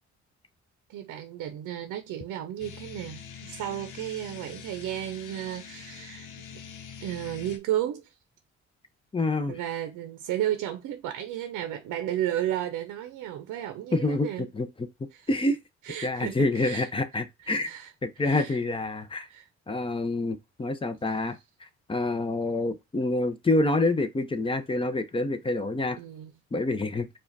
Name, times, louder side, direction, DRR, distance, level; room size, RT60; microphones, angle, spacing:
voice 1, 0.9-6.3 7.0-8.1 9.5-14.5 15.1-15.3 15.8-16.9 17.4-18.6 19.3-19.5 26.0-26.3, right 12 dB, 85° right, 0.6 m, -33 dB
sound 1, 2.6-7.6, left 7 dB, 85° left, 0.9 m, -44 dB
voice 2, 9.1-9.6 13.9-14.3 14.5-14.7 15.3-15.6 16.0-17.7 18.0-19.3 19.7-21.4 21.9-26.0 26.5-27.1, left 2 dB, 15° left, 0.7 m, -27 dB
4.8 x 2.4 x 3.9 m
cardioid pair, 90°, 30 cm